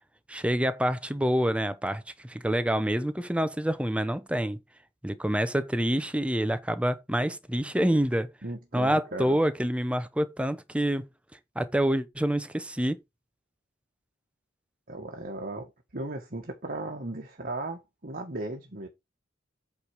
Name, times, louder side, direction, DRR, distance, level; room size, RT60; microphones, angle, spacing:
voice 1, 0.3-4.6 5.0-8.3 8.7-11.1 11.5-13.0, equal, 5° right, 0.9 m, -27 dB
voice 2, 8.4-9.4 14.9-18.9, right 2 dB, 45° right, 1.6 m, -36 dB
8.6 x 4.8 x 4.9 m
head